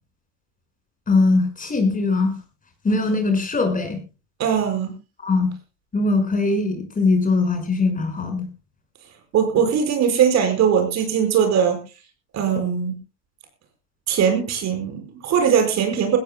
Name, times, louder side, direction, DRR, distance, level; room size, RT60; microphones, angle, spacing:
voice 1, 1.1-2.4 2.8-4.0 5.2-5.5 5.9-8.5, left 3 dB, 25° left, 6 dB, 5.5 m, -21 dB
voice 2, 4.4-4.9 9.3-11.8 12.3-12.9 14.1-16.2, right 8 dB, 50° right, 6 dB, 5.1 m, -20 dB
21.0 x 17.0 x 2.2 m, 0.29 s
supercardioid pair, 95°, 35 cm